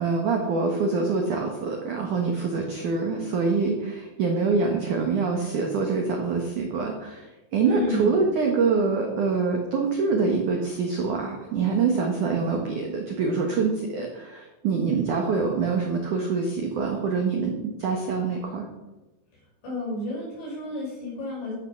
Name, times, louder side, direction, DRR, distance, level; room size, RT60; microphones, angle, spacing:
voice 1, 0.0-17.5 17.8-18.7, right 4 dB, 80° right, 1 dB, 1.8 m, -25 dB
voice 2, 7.6-8.1 19.6-21.5, left 2 dB, 60° left, -4 dB, 8.2 m, -30 dB
13.0 x 8.9 x 5.9 m, 1.1 s
omnidirectional pair, 5.9 m